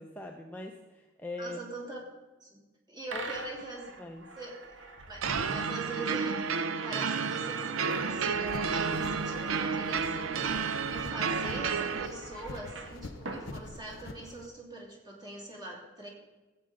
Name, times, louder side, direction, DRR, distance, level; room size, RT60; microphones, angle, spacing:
voice 1, 0.0-1.6 3.1-3.2 4.0-4.3, left 2 dB, 10° left, 1 dB, 0.6 m, -41 dB
voice 2, 1.4-2.0 2.4-2.6 2.9-3.9 4.4-4.6 5.1-16.1, right 2 dB, 20° right, -3 dB, 2.7 m, -42 dB
sound 1, 3.1-14.3, right 3 dB, 60° right, 1.2 m, -46 dB
sound 2, 5.2-12.1, right 5 dB, 85° right, 0.6 m, -31 dB
sound 3, 8.3-14.5, left 2 dB, 80° left, 0.8 m, -46 dB
15.5 x 8.4 x 3.8 m, 1.2 s
head